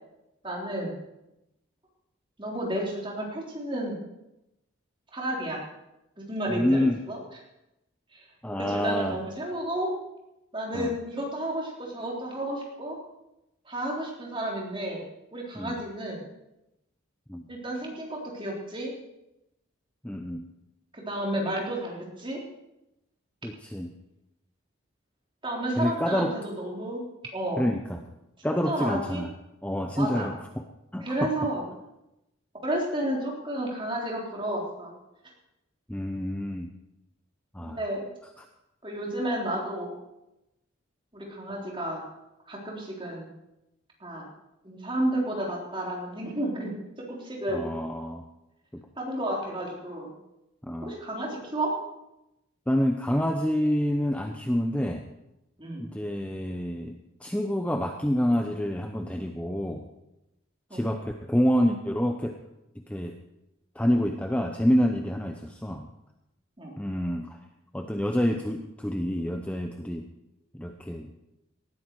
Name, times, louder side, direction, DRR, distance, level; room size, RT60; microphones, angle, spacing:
voice 1, 0.4-1.0 2.4-4.0 5.1-5.6 6.3-7.2 8.1-8.3 8.6-9.9 10.5-13.0 13.7-16.3 17.5-18.9 20.9-22.4 25.4-27.0 27.3-27.6 28.5-29.2 30.0-30.3 31.0-31.7 32.6-34.9 37.6-38.1 38.8-40.0 41.1-42.0 42.5-43.3 44.0-44.3 44.6-46.7 47.1-47.7 49.0-50.1 50.8-51.7 55.6-55.9 60.7-60.9 66.6-66.7, right 1 dB, 25° right, -2 dB, 3.7 m, -32 dB
voice 2, 6.5-7.0 8.4-9.2 10.7-10.9 15.6-15.8 17.3-17.5 20.0-20.5 23.4-23.9 25.8-26.4 27.6-28.0 28.4-29.3 29.6-30.3 30.9-31.3 35.9-36.7 37.5-37.8 38.4-38.5 47.5-48.2 48.7-48.8 50.6-51.0 52.7-55.0 55.8-59.8 60.7-62.4 62.9-63.2 63.7-65.9 66.8-67.4 67.7-70.0 70.5-71.1, equal, 5° left, 4 dB, 0.7 m, -27 dB
18.5 x 13.5 x 4.7 m, 0.91 s
head